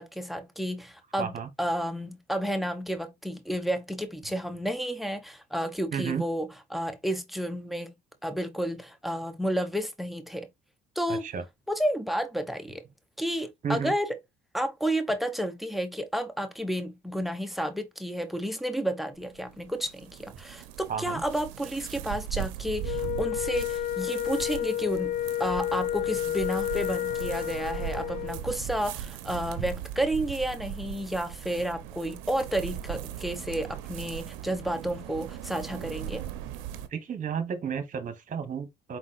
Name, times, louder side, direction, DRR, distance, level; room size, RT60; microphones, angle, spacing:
voice 1, 0.0-1.3 1.6-8.0 8.2-10.5 11.0-11.2 11.7-12.8 13.2-14.2 14.5-36.2, equal, ahead, 0.9 m, -31 dB
voice 2, 1.2-1.5 5.9-6.3 11.1-11.4 13.6-13.9 20.9-21.2 36.9-39.0, right 7 dB, 40° right, 1.3 m, -32 dB
sound 1, 19.1-36.9, right 11 dB, 90° right, 0.6 m, -39 dB
Wind instrument woodwind instrument, 22.8-28.4, left 12 dB, 45° left, 0.4 m, -30 dB
4.8 x 3.9 x 2.4 m
supercardioid pair, 85°, 20 cm